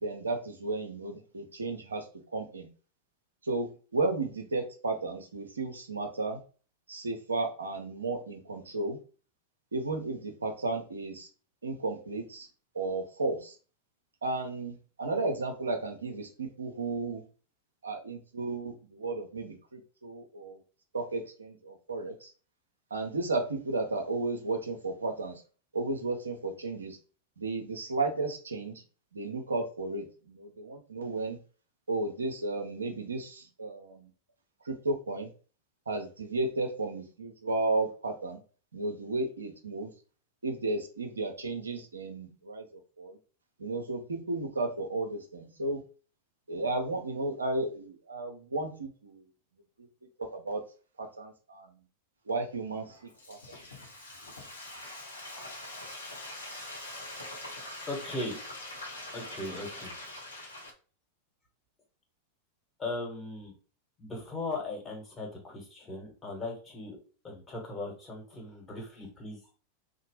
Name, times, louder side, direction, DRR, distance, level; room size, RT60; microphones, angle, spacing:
voice 1, 0.0-2.1 2.3-2.7 3.4-6.4 6.9-9.0 9.7-11.3 11.6-12.5 12.7-13.5 14.2-17.2 17.8-20.6 20.9-22.3 22.9-25.4 25.7-27.0 27.4-28.8 29.1-31.4 31.9-34.1 34.6-35.3 35.9-38.4 38.7-39.9 40.4-42.7 43.0-43.2 43.6-45.8 46.5-49.2 50.3-50.6 51.0-51.7 52.3-52.9 53.3-53.6, right 2 dB, 75° right, 4 dB, 0.5 m, -33 dB
Frying (food), 52.8-60.7, left 1 dB, 75° left, 0.7 m, -43 dB
voice 2, 57.9-58.4 59.1-59.9 62.8-63.5 64.0-67.0 67.2-69.5, left 2 dB, 20° left, 0 dB, 1.1 m, -38 dB
2.9 x 2.0 x 3.0 m, 0.37 s
figure-of-eight pair, 90°, 0 cm